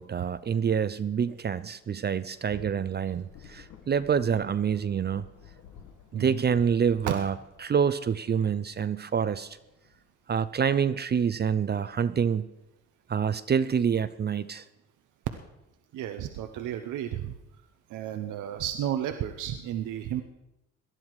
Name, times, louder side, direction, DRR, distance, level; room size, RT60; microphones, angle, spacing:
voice 1, 0.0-5.2 6.1-7.4 7.6-9.6 10.3-12.5 13.1-14.6, right 7 dB, 35° right, 13 dB, 0.5 m, -27 dB
Thunder / Rain, 2.0-10.9 11.5-12.8, left 7 dB, 80° left, 1.5 m, -54 dB
voice 2, 15.9-17.3 17.9-20.2, right 11 dB, 85° right, 7 dB, 0.9 m, -33 dB
18.0 x 11.5 x 4.7 m, 0.94 s
cardioid pair, 90°, 30 cm